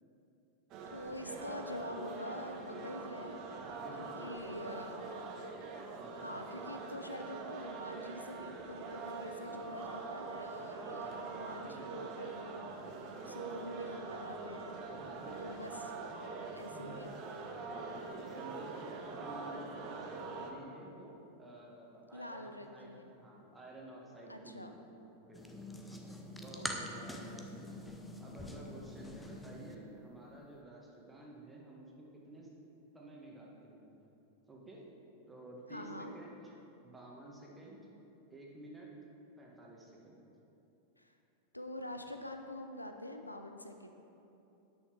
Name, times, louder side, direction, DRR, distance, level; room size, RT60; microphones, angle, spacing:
sound 1, 0.7-20.5, right 4 dB, 40° right, 0.9 m, -44 dB
voice 1, 0.9-3.4 4.0-5.1 6.2-12.7 13.3-14.8 15.4-15.9 16.5-17.1 22.1-23.2 24.3-24.8 26.5-27.0 35.7-36.2 41.0-41.1 41.5-43.9, left 1 dB, 85° left, 5 dB, 0.5 m, -46 dB
voice 2, 3.7-4.9 6.0-6.3 10.5-12.1 14.9-15.6 16.7-17.1 17.6-25.6 26.4-27.7 28.2-32.5 32.9-34.0 34.5-34.8 35.3-36.5 36.8-37.8 38.3-38.9 39.4-40.2, right 1 dB, 10° right, -3 dB, 1.6 m, -52 dB
sound 2, 25.3-29.7, left 1 dB, 5° left, 0.7 m, -44 dB
9.7 x 6.5 x 4.6 m, 2.9 s
figure-of-eight pair, 90°, 0 cm